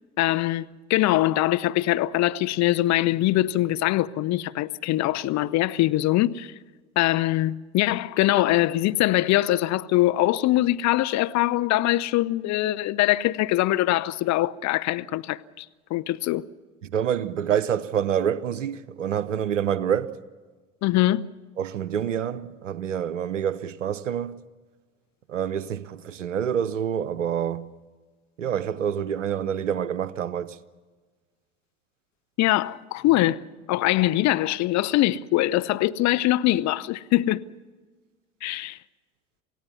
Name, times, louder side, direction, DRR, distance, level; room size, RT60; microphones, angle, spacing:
voice 1, 0.2-6.5 7.0-16.4 20.8-21.3 32.4-37.4 38.4-38.8, left 16 dB, 50° left, 0.8 m, -23 dB
voice 2, 16.8-20.1 21.6-24.3 25.3-27.7 28.4-30.6, right 9 dB, 85° right, 0.9 m, -27 dB
27.5 x 17.0 x 7.1 m
figure-of-eight pair, 65°, 37 cm